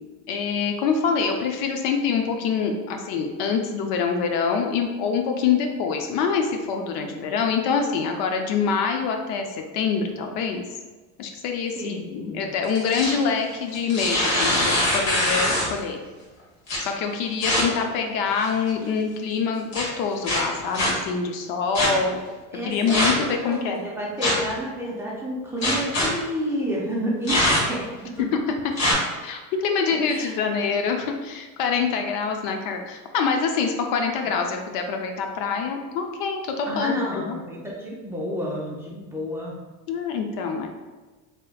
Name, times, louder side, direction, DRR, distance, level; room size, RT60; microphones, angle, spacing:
voice 1, 0.3-9.5 9.7-10.6 11.2-16.0 16.8-22.2 22.6-23.8 29.2-37.4 39.9-40.7, left 5 dB, 70° left, 4 dB, 0.6 m, -25 dB
voice 2, 11.8-12.4 22.5-27.8 28.0-28.2 30.1-30.3 36.7-39.5, equal, 5° right, -6 dB, 0.5 m, -30 dB
sound 1, 12.6-13.2 13.7-15.8 16.7-16.8 17.4-17.6 18.3-18.7 19.7-19.8 20.2-20.9 21.7-21.9 22.9-23.3 24.2-24.5 25.6-26.1 27.3-27.8 28.8-28.9, left 1 dB, 45° left, 1.4 m, -22 dB
3.2 x 3.0 x 2.3 m, 1.3 s
supercardioid pair, 130°, 39 cm